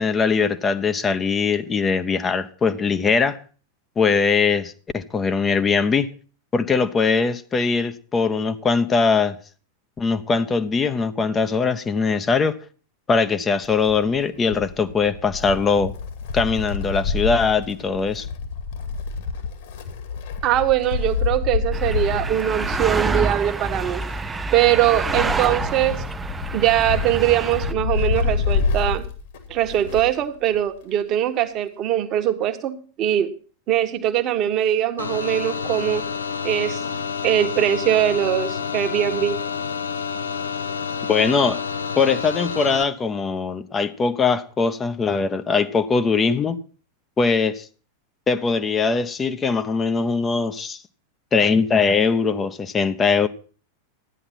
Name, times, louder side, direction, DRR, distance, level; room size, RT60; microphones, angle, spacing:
voice 1, 0.0-3.4 4.0-6.1 6.5-9.3 10.0-12.6 13.1-15.9 16.3-18.3 41.1-41.6 42.0-46.6 47.2-47.7 48.3-50.8 51.3-53.3, left 5 dB, 20° left, 0.9 m, -21 dB
Wind, 13.6-30.2 30.5-30.6 31.6-31.7, left 5 dB, 55° left, 2.3 m, -28 dB
voice 2, 20.4-24.0 24.5-26.0 26.5-29.0 29.5-33.3 33.7-36.1 36.4-36.8 37.2-39.4, right 12 dB, 35° right, 1.4 m, -21 dB
sound 1, 21.7-27.7, right 3 dB, 15° right, 0.6 m, -27 dB
sound 2, 35.0-42.8, left 6 dB, 70° left, 0.8 m, -29 dB
13.5 x 10.0 x 5.7 m
figure-of-eight pair, 90°, 0 cm